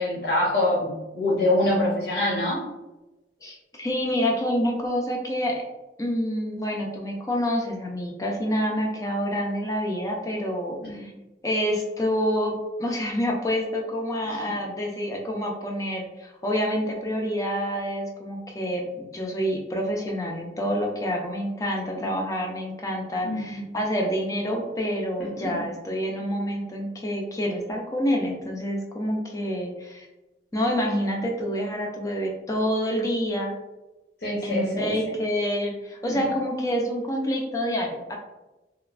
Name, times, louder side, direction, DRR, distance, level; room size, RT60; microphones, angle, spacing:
voice 1, 0.0-2.6 10.8-11.1 14.5-14.6 22.0-22.1 23.2-23.6 25.2-25.6 34.2-34.9 36.0-36.2, left 1 dB, 65° left, -6 dB, 0.8 m, -25 dB
voice 2, 3.4-5.6 6.0-11.1 11.4-30.1 30.5-33.5 34.4-38.2, equal, 20° left, 0 dB, 0.4 m, -27 dB
3.0 x 2.1 x 2.4 m, 1.0 s
head